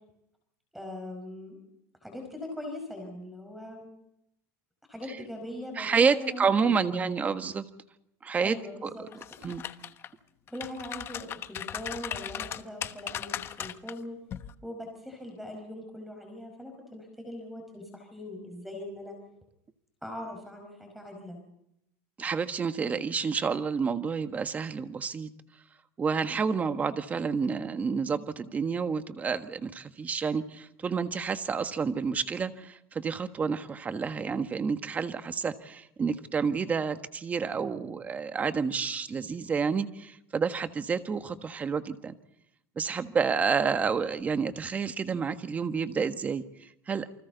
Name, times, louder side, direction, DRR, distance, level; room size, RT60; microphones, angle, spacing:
voice 1, 0.7-1.6 2.0-3.9 4.9-7.1 8.4-9.0 10.5-14.2 14.6-19.2 20.0-21.4, left 1 dB, ahead, 3 dB, 5.1 m, -41 dB
voice 2, 5.8-7.6 8.2-8.6 8.8-8.9 9.4-9.6 22.2-25.3 26.0-42.1 42.8-47.1, right 5 dB, 20° right, 10 dB, 1.4 m, -29 dB
sound 1, 9.1-10.1 10.5-13.9 14.3-14.5, left 10 dB, 30° left, 1.1 m, -37 dB
28.5 x 25.0 x 4.0 m, 0.78 s
supercardioid pair, 155°, 8 cm